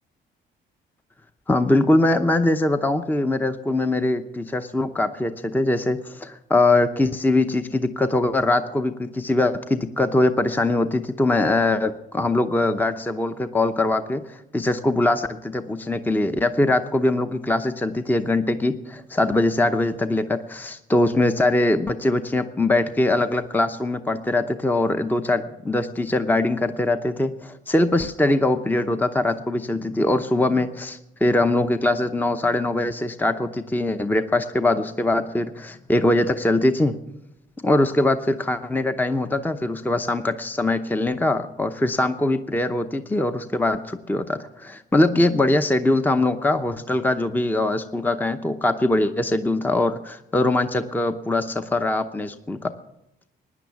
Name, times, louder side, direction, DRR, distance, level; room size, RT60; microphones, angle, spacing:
voice 1, 1.5-37.0 37.6-52.7, left 2 dB, 10° left, 9 dB, 0.7 m, -22 dB
17.0 x 10.0 x 7.1 m, 0.88 s
cardioid pair, 90°, 20 cm